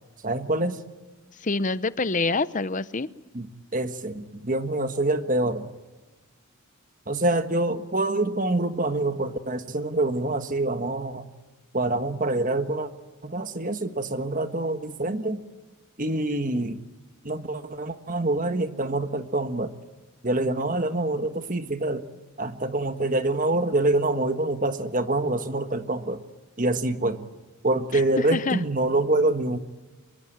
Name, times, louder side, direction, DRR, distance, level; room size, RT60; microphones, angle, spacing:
voice 1, 0.2-0.8 3.3-3.5 3.7-5.7 7.1-11.3 11.7-12.9 13.2-15.4 16.0-16.8 17.2-19.7 20.2-22.0 22.4-26.2 26.6-27.3 27.6-29.6, right 2 dB, 35° right, 9 dB, 1.5 m, -26 dB
voice 2, 1.4-3.1 27.9-28.7, left 3 dB, 35° left, 15 dB, 0.7 m, -26 dB
25.0 x 22.5 x 8.9 m, 1.2 s
head